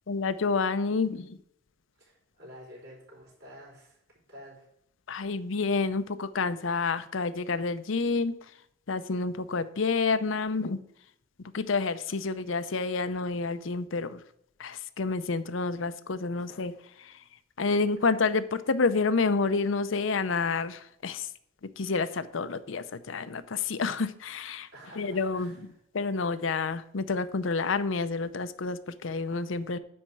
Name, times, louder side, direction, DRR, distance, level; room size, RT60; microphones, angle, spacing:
voice 1, 0.1-1.4 5.1-8.3 8.9-10.8 11.5-14.2 14.6-16.7 17.0-17.1 17.6-21.3 21.8-24.7 25.0-25.6 25.9-29.8, left 4 dB, 75° left, 12 dB, 0.6 m, -29 dB
voice 2, 2.0-4.0 4.3-4.7 16.3-16.5 24.7-25.7, equal, 55° right, -3 dB, 4.8 m, -50 dB
10.0 x 4.4 x 7.6 m, 0.73 s
head